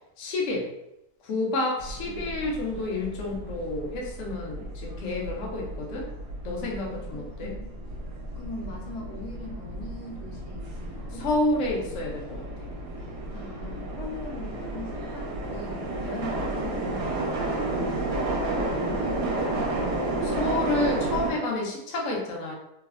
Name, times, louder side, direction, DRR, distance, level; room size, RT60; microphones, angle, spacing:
voice 1, 0.2-0.7 1.2-6.1 6.4-7.5 11.2-12.5 17.8-17.9 20.2-22.5, left 2 dB, 60° left, -2 dB, 0.8 m, -29 dB
sound 1, 1.8-21.3, right 2 dB, 80° right, 1.2 m, -32 dB
voice 2, 2.0-2.5 6.7-7.7 8.3-11.3 13.3-17.1 17.6-19.7, left 3 dB, 75° left, -1 dB, 1.1 m, -41 dB
3.1 x 2.0 x 2.3 m, 0.86 s
omnidirectional pair, 1.8 m